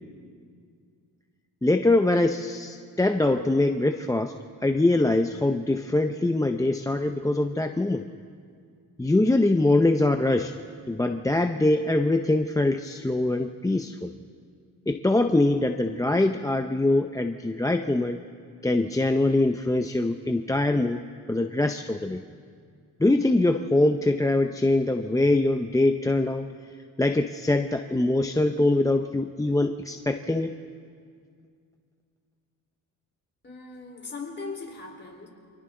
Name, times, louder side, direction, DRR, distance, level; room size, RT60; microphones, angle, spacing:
voice 1, 1.6-4.3 4.6-8.0 9.0-10.5 10.9-14.1 14.9-18.2 18.6-22.2 23.0-26.5 27.0-30.5, left 2 dB, 10° left, 6 dB, 0.6 m, -23 dB
voice 2, 33.4-35.3, left 4 dB, 30° left, 0 dB, 4.0 m, -39 dB
29.0 x 25.0 x 3.8 m, 2.2 s
cardioid pair, 110°, 39 cm